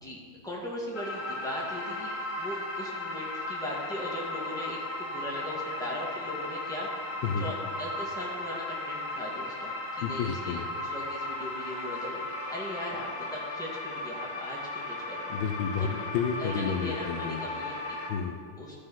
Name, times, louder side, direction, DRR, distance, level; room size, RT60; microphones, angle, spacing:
voice 1, 0.0-15.3 15.8-16.0 16.4-18.0 18.6-18.8, equal, ahead, -4 dB, 1.7 m, -39 dB
sound 1, 0.9-18.1, left 2 dB, 45° left, 1.5 m, -36 dB
voice 2, 10.0-10.6 15.3-17.4 18.1-18.4, left 6 dB, 75° left, 4 dB, 1.3 m, -31 dB
14.0 x 5.1 x 5.6 m, 2.1 s
omnidirectional pair, 2.3 m